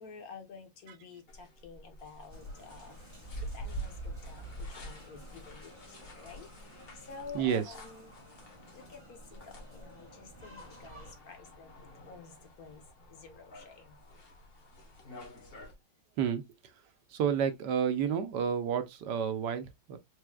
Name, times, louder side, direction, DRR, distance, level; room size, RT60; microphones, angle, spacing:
voice 1, 0.0-3.0 3.5-5.8 6.2-8.1 8.7-11.7 12.0-12.8 13.1-14.0, left 4 dB, 60° left, 1.4 m, -50 dB
sound 1, 1.3-15.7, left 2 dB, 35° left, 1.2 m, -54 dB
sound 2, 2.3-11.1, right 1 dB, 15° left, 2.0 m, -45 dB
voice 2, 7.3-7.7 16.2-16.4 17.1-20.0, right 8 dB, 75° right, 1.3 m, -30 dB
4.8 x 3.7 x 2.2 m
omnidirectional pair, 1.9 m